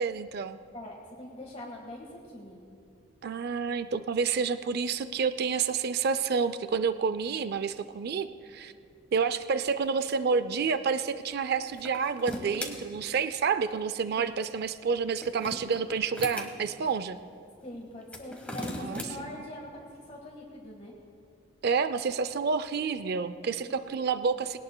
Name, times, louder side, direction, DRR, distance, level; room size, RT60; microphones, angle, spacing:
voice 1, 0.0-0.6 3.2-8.7 9.1-17.2 18.8-19.1 21.6-24.6, right 5 dB, 50° right, 13 dB, 0.4 m, -29 dB
voice 2, 0.7-2.6 14.2-14.4 17.6-20.9 23.6-23.7, left 1 dB, 35° left, -3 dB, 1.5 m, -43 dB
sound 1, 11.7-12.7 15.0-16.5 18.0-19.1, left 1 dB, 5° left, 1.3 m, -38 dB
21.0 x 18.0 x 2.2 m, 2.5 s
head